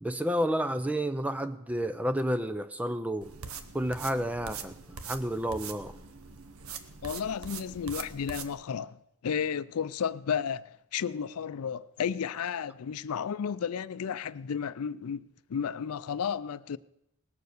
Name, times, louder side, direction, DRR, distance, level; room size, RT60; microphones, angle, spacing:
voice 1, 0.0-3.3 3.7-4.7 5.1-5.9, equal, 5° right, 0.4 m, -30 dB
sound 1, 3.2-8.5, right 6 dB, 80° right, 0.9 m, -43 dB
voice 2, 7.0-9.0 9.2-16.8, left 7 dB, 90° left, 0.4 m, -33 dB
19.0 x 6.9 x 6.5 m
head